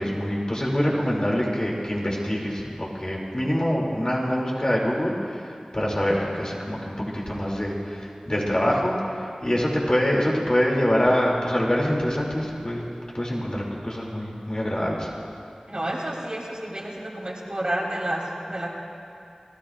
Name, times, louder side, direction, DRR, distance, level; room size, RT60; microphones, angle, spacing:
voice 1, 0.0-9.0 9.4-12.9 13.1-15.1, equal, 35° left, -3 dB, 2.7 m, -25 dB
voice 2, 15.7-18.7, right 1 dB, 45° right, -3 dB, 3.0 m, -30 dB
29.0 x 14.0 x 2.5 m, 2.5 s
wide cardioid pair, 50°, 2 cm